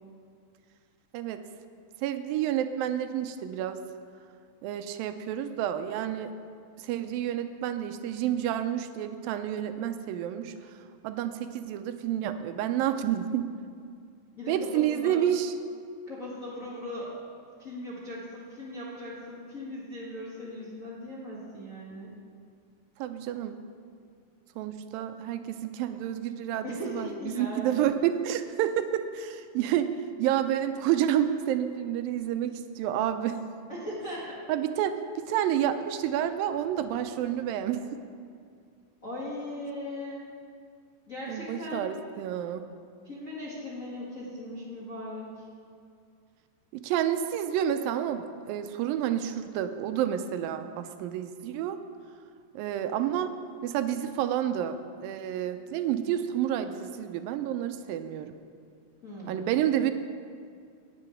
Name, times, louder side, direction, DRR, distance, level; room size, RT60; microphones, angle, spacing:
voice 1, 2.0-3.8 4.6-6.3 6.8-10.5 11.0-13.5 14.5-15.5 23.0-23.6 24.6-29.9 30.2-33.4 34.5-37.8 41.3-42.7 46.7-51.8 52.5-53.3 53.6-58.3 59.3-59.9, right 10 dB, 85° right, 9 dB, 2.3 m, -29 dB
voice 2, 14.3-15.2 16.1-17.2 17.6-22.1 26.6-27.6 33.7-34.3 39.0-40.2 41.1-41.9 43.0-45.4 59.0-59.5, left 1 dB, 40° left, -7 dB, 1.2 m, -38 dB
9.7 x 7.0 x 9.2 m, 2.3 s
omnidirectional pair, 4.1 m